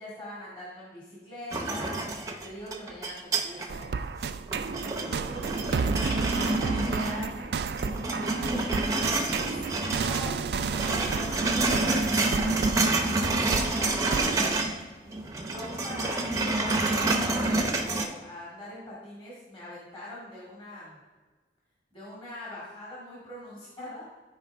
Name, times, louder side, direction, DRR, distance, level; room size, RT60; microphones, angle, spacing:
voice 1, 0.0-4.0 4.6-6.0 6.5-7.5 8.0-8.7 9.0-14.6 15.4-21.0 21.9-24.0, left 1 dB, 30° left, -7 dB, 2.1 m, -43 dB
sound 1, 1.5-3.8 4.2-7.4 7.7-10.2 10.5-14.8 15.1-18.0, right 2 dB, 20° right, 0.7 m, -28 dB
sound 2, 3.7-14.6, right 5 dB, 65° right, 0.4 m, -32 dB
12.5 x 4.6 x 3.5 m, 1.4 s
head